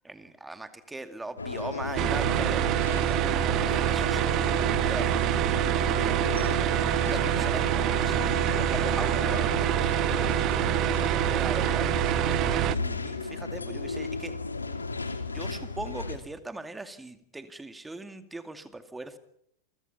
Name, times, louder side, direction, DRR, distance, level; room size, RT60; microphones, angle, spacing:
voice 1, 0.0-6.6 7.0-8.6 9.0-9.5 11.4-12.1 12.4-14.4 15.3-19.2, right 2 dB, 10° right, 9 dB, 2.4 m, -40 dB
sound 1, 1.4-16.2, left 4 dB, 80° left, 2.9 m, -34 dB
sound 2, 2.0-12.8, right 14 dB, 35° right, 0.9 m, -26 dB
voice 2, 6.9-7.4 8.5-11.4, left 2 dB, 5° left, 5 dB, 2.9 m, -41 dB
28.5 x 24.0 x 5.7 m, 0.71 s
figure-of-eight pair, 90°, 0 cm